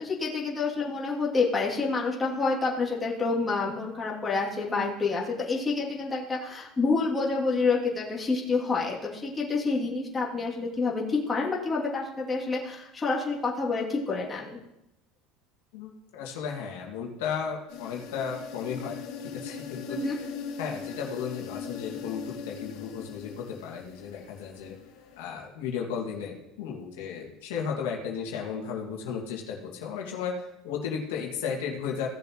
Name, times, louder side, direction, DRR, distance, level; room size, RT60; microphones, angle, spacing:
voice 1, 0.0-14.6 19.9-20.1, left 4 dB, 20° left, -4 dB, 2.6 m, -28 dB
voice 2, 15.7-18.9 19.2-20.2 20.6-24.8 25.2-32.1, left 6 dB, 90° left, -1 dB, 2.0 m, -34 dB
sound 1, 17.7-25.2, left 6 dB, 75° left, 1.8 m, -40 dB
17.0 x 7.0 x 3.0 m, 0.88 s
supercardioid pair, 120°, 0 cm